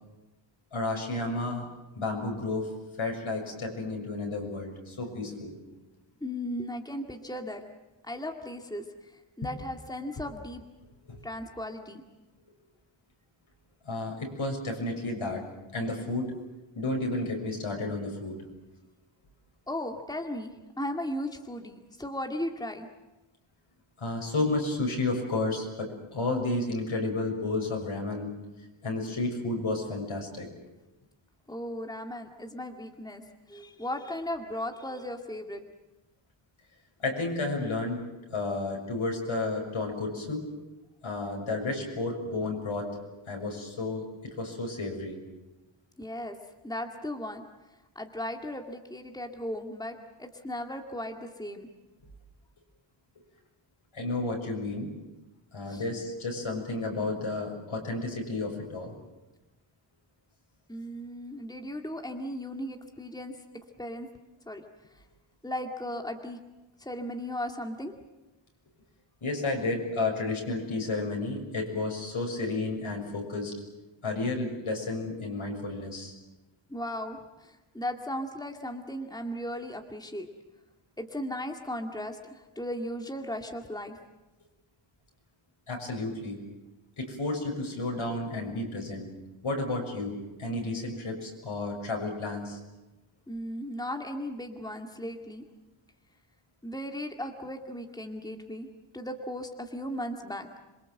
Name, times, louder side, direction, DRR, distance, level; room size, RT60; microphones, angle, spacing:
voice 1, 0.7-1.7 2.0-2.7 3.0-5.6 10.2-10.3 11.1-11.2 13.8-15.4 15.7-16.3 16.7-18.4 24.0-28.3 28.8-30.5 37.0-40.5 41.0-42.9 43.3-45.2 53.9-54.9 55.5-58.9 69.2-73.5 74.0-76.1 85.7-86.4 87.0-89.1 89.4-92.6, left 2 dB, 75° left, 1 dB, 6.9 m, -32 dB
voice 2, 6.2-7.6 8.0-8.8 9.4-10.6 11.2-12.0 19.7-20.5 20.8-22.9 31.5-33.2 33.5-35.6 46.0-46.4 46.6-47.5 48.0-51.7 55.7-55.8 60.7-63.3 63.8-64.1 64.5-64.6 65.4-66.4 66.8-67.9 76.7-80.3 81.0-84.0 93.3-95.4 96.6-98.7 98.9-100.5, left 1 dB, 10° left, 3 dB, 2.2 m, -36 dB
27.0 x 23.5 x 7.9 m, 1.1 s
wide cardioid pair, 95°, 49 cm